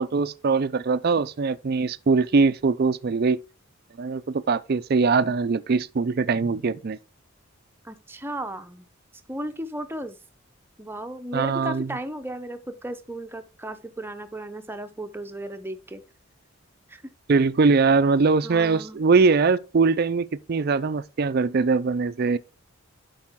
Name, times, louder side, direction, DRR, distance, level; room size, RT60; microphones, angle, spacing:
voice 1, 0.0-3.4 4.0-7.0 11.3-12.0 17.3-22.4, right 4 dB, 45° right, 0.4 m, -22 dB
voice 2, 7.8-8.9 9.3-10.2 10.8-16.0 16.9-17.0 18.4-19.0, right 1 dB, 10° right, 0.7 m, -35 dB
11.5 x 4.9 x 3.6 m
head